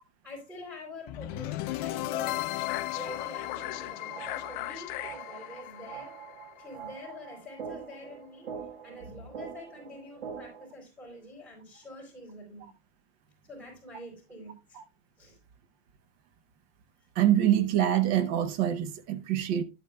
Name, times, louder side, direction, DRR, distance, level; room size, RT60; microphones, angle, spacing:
voice 1, 0.2-2.5 2.9-6.1 6.6-8.5 8.8-12.7 13.5-14.8 15.2-15.4, left 1 dB, ahead, 3.8 m, -46 dB
sound 1, 1.1-7.1, left 16 dB, 30° left, 0.4 m, -35 dB
sound 2, 3.6-10.6, right 7 dB, 70° right, 2.0 m, -44 dB
voice 2, 17.2-19.6, right 11 dB, 40° right, 0.7 m, -25 dB
11.0 x 8.5 x 2.2 m
supercardioid pair, 155°, 33 cm